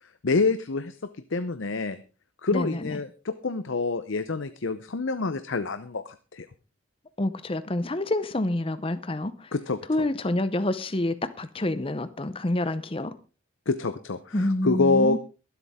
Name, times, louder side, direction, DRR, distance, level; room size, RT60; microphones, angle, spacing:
voice 1, 0.0-1.0 1.3-2.0 2.4-6.5 9.5-9.8 13.7-15.2, left 3 dB, 65° left, 0.7 m, -27 dB
voice 2, 2.5-3.0 7.2-9.5 9.9-13.1 14.3-15.2, left 1 dB, 25° left, 0.7 m, -27 dB
23.0 x 8.2 x 3.6 m
head